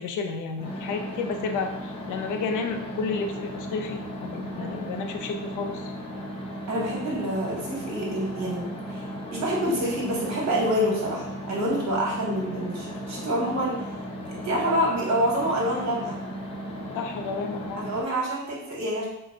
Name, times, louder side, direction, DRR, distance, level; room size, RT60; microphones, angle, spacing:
voice 1, 0.0-5.9 16.9-17.9, left 4 dB, 80° left, 5 dB, 0.5 m, -31 dB
sound 1, 0.6-18.0, equal, 20° left, 0.8 m, -36 dB
voice 2, 4.5-4.8 6.7-9.0 9.3-13.8 14.3-16.2 17.8-19.0, equal, 60° right, -3 dB, 1.2 m, -27 dB
2.7 x 2.0 x 3.9 m, 0.93 s
cardioid pair, 90°, 30 cm